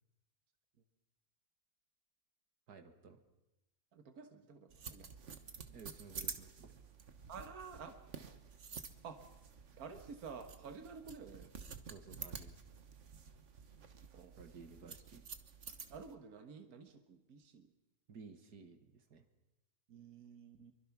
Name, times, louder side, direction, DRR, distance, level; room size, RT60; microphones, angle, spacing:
voice 1, 2.7-3.2 5.7-6.8 11.9-12.6 14.4-15.2 18.1-19.3, right 5 dB, 85° right, 8 dB, 2.3 m, -55 dB
voice 2, 3.9-5.3 5.7-5.8 7.3-8.0 9.0-9.2 9.8-11.5 14.1-14.3 14.6-14.9 15.9-17.7 19.9-20.7, right 5 dB, 65° right, 7 dB, 1.9 m, -51 dB
sound 1, 4.7-16.1, right 6 dB, 50° right, 1.5 m, -50 dB
25.0 x 23.5 x 6.0 m, 0.96 s
omnidirectional pair, 1.7 m